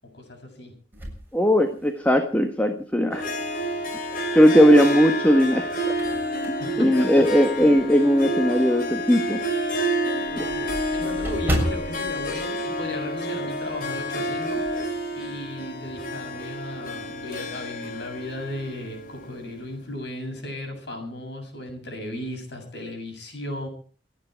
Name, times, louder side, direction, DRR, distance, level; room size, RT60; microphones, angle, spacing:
voice 1, 0.0-0.7 6.6-7.3 7.6-7.7 10.1-14.6 15.1-23.7, left 1 dB, 65° left, 3 dB, 7.2 m, -36 dB
sound 1, 0.9-2.3 2.8-2.9 4.4-4.9 5.4-8.0 8.4-8.6 8.9-9.0 9.3-9.4 9.7-13.5 13.7-13.9 14.3-14.9, equal, 10° right, 7.2 m, -33 dB
voice 2, 1.3-3.2 4.3-5.7 6.5-9.4 10.4-10.5, equal, 10° left, 6 dB, 1.4 m, -18 dB
Harp, 3.1-19.6, equal, 50° left, 3.9 m, -29 dB
28.5 x 9.8 x 4.7 m, 0.41 s
head